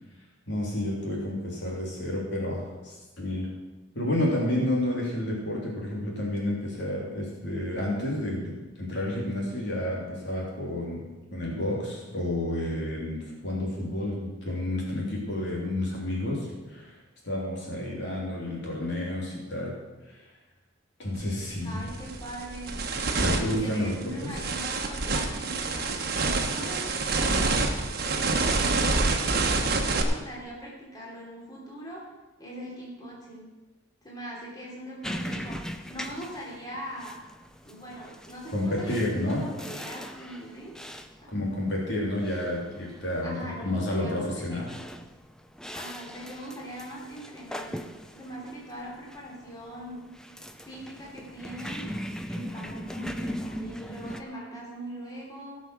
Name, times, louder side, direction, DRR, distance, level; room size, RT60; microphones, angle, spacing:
voice 1, 0.5-3.5 3.9-17.0 17.2-19.7 20.1-20.2 21.0-21.8 23.2-24.3 38.5-39.4 41.3-43.4 43.6-44.7, left 1 dB, 60° left, -3 dB, 3.4 m, -30 dB
sound 1, 21.2-21.3 21.8-30.0, right 3 dB, 50° right, 1.3 m, -27 dB
voice 2, 21.6-22.8 23.5-25.9 26.4-27.4 27.9-29.0 29.8-32.0 32.4-33.5 34.0-37.2 37.6-40.7 41.2-41.3 43.2-44.6 45.7-50.0 50.6-51.9 52.3-55.6, equal, 20° left, -4 dB, 3.2 m, -41 dB
sound 2, 35.0-54.2, equal, 5° left, 0.5 m, -40 dB
17.0 x 6.4 x 6.2 m, 1.1 s
head